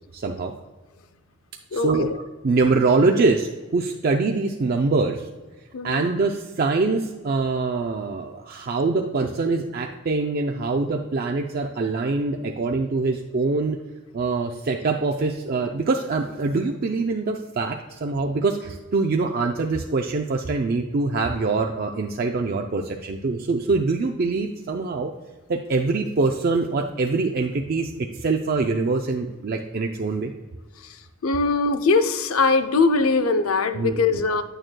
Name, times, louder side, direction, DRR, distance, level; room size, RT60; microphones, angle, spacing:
voice 1, 0.1-0.5 1.7-2.1 2.4-5.3 5.8-13.8 14.1-25.1 25.5-30.3 33.7-34.0, right 3 dB, 45° right, 2 dB, 0.4 m, -24 dB
voice 2, 1.7-2.1 5.7-6.0 30.8-34.4, left 4 dB, 80° left, 9 dB, 0.6 m, -21 dB
9.0 x 8.8 x 2.2 m, 1.2 s
head